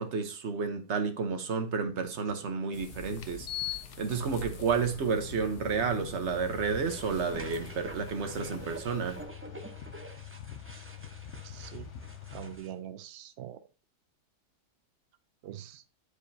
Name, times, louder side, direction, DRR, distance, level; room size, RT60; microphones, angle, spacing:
voice 1, 0.0-9.2, right 5 dB, 50° right, 1.1 m, -31 dB
sound 1, 2.2-2.3 3.2-12.6, left 11 dB, 60° left, 0.9 m, -44 dB
sound 2, 2.7-9.2, left 3 dB, 80° left, 1.8 m, -45 dB
sound 3, 6.8-12.7, right 2 dB, 15° right, 0.4 m, -48 dB
voice 2, 11.4-11.9 12.3-13.6 15.4-15.8, right 11 dB, 75° right, 0.6 m, -43 dB
9.6 x 4.8 x 2.7 m
omnidirectional pair, 1.7 m